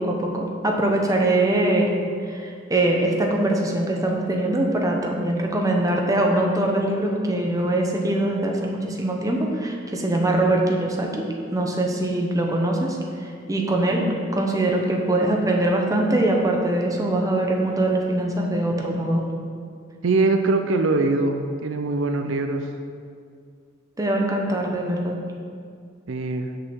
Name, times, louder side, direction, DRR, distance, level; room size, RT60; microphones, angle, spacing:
voice 1, 0.0-2.0 2.2-13.0 13.5-19.2 24.0-25.2, right 1 dB, 20° right, 0 dB, 0.9 m, -22 dB
voice 2, 20.0-22.7 26.1-26.5, right 3 dB, 80° right, 6 dB, 0.5 m, -22 dB
6.7 x 5.5 x 6.1 m, 2.2 s
head